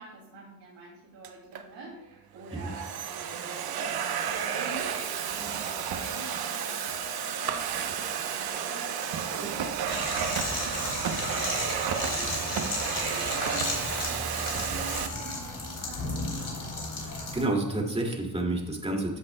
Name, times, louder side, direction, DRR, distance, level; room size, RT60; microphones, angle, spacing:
voice 1, 0.0-16.7, right 3 dB, 90° right, -4 dB, 2.6 m, -47 dB
Domestic sounds home sounds, 1.2-1.6 2.4-15.1, right 8 dB, 60° right, 0.9 m, -32 dB
sound 1, 4.6-6.8 7.6-8.6 8.9-9.9, right 5 dB, 40° right, 1.4 m, -46 dB
sound 2, 9.9-17.4, left 3 dB, 50° left, 3.5 m, -34 dB
voice 2, 17.0-19.2, right 2 dB, 15° right, 0 dB, 2.3 m, -30 dB
14.5 x 8.0 x 2.2 m, 0.91 s
cardioid pair, 95°, 41 cm